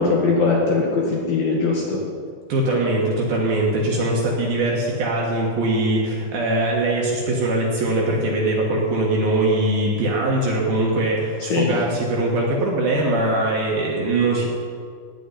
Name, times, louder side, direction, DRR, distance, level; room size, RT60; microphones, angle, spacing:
voice 1, 0.0-2.0 11.5-11.8, left 4 dB, 70° left, -2 dB, 2.4 m, -20 dB
voice 2, 2.5-14.5, right 2 dB, 65° right, -2 dB, 2.6 m, -21 dB
15.5 x 5.2 x 9.8 m, 2.1 s
omnidirectional pair, 5.7 m